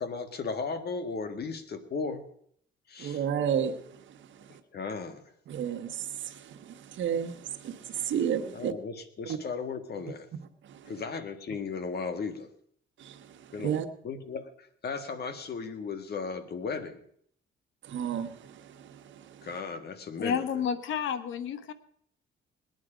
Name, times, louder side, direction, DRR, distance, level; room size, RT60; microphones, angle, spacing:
voice 1, 0.0-2.2 2.9-3.2 4.7-5.2 8.5-10.3 10.9-12.5 13.5-17.0 19.4-20.4, left 4 dB, 55° left, 9 dB, 1.7 m, -36 dB
voice 2, 3.0-3.8 5.5-8.7 9.3-9.4 10.8-10.9 13.0-13.8 17.8-19.5, right 8 dB, 70° right, 6 dB, 1.3 m, -32 dB
voice 3, 20.2-21.7, left 7 dB, 80° left, 12 dB, 1.1 m, -30 dB
20.5 x 9.6 x 5.0 m, 0.66 s
cardioid pair, 90°, 20 cm